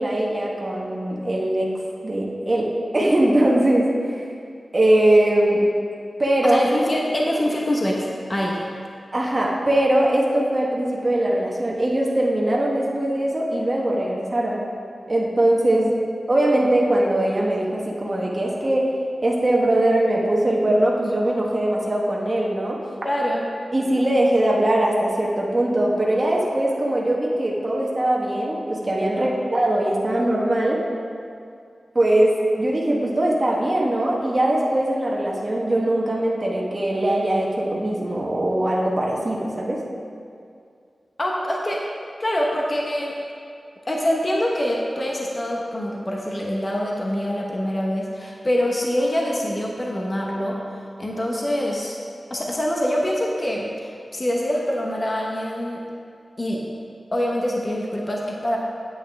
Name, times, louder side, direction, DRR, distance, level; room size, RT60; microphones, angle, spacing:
voice 1, 0.0-1.7 2.0-4.3 4.7-5.6 6.2-6.6 9.1-14.6 15.1-15.9 16.3-18.9 19.2-22.8 23.7-30.8 31.9-39.8, right 1 dB, 30° right, -3 dB, 1.2 m, -21 dB
voice 2, 6.4-8.7 23.0-23.4 29.1-29.5 41.2-41.8 42.2-43.1 43.9-50.6 51.0-52.0 52.3-55.8 56.4-56.6 57.1-58.6, equal, 30° left, -2 dB, 1.0 m, -25 dB
8.8 x 8.2 x 3.5 m, 2.4 s
wide cardioid pair, 80°, 0 cm